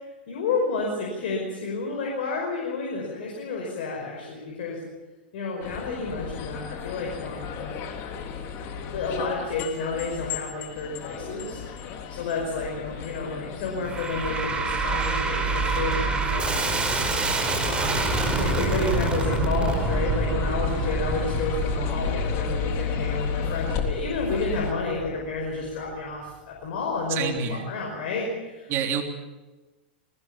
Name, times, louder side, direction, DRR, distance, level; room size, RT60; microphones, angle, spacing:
voice 1, 0.3-4.8 5.3-7.6 8.9-16.6 17.6-28.7, left 3 dB, 65° left, 0 dB, 5.5 m, -30 dB
sound 1, 5.6-24.7, left 7 dB, 45° left, 3.4 m, -33 dB
sound 2, 13.8-25.1, right 3 dB, 15° right, 4.8 m, -27 dB
voice 2, 27.1-27.6 28.7-29.0, right 7 dB, 40° right, 4 dB, 3.4 m, -27 dB
21.5 x 19.5 x 7.1 m, 1.2 s
hypercardioid pair, 105°, 6 cm